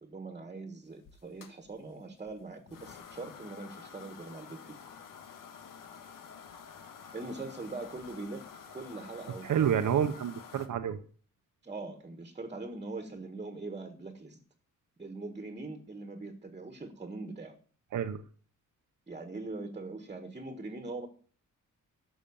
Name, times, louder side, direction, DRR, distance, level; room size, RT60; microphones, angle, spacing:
voice 1, 0.0-4.8 7.1-9.7 11.6-14.4 15.0-17.5 19.1-21.1, right 3 dB, 20° right, 6 dB, 1.6 m, -42 dB
sound 1, 1.1-10.7, left 7 dB, 85° left, 1.7 m, -50 dB
voice 2, 9.4-11.0 17.9-18.2, right 8 dB, 70° right, 7 dB, 1.0 m, -29 dB
13.0 x 6.3 x 7.0 m, 0.42 s
wide cardioid pair, 130°, 32 cm